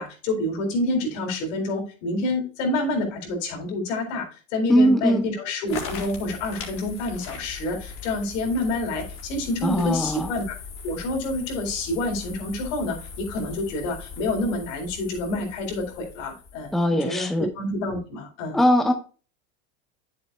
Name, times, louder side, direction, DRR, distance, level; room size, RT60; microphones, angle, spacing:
voice 1, 0.0-10.5 10.8-18.6, left 2 dB, 75° left, 2 dB, 4.3 m, -28 dB
voice 2, 4.7-5.2 9.6-10.3 16.7-17.5 18.5-18.9, equal, ahead, 6 dB, 1.0 m, -20 dB
sound 1, 5.7-16.8, left 5 dB, 40° left, 3.7 m, -39 dB
9.9 x 7.7 x 2.3 m, 0.36 s
supercardioid pair, 120°, 38 cm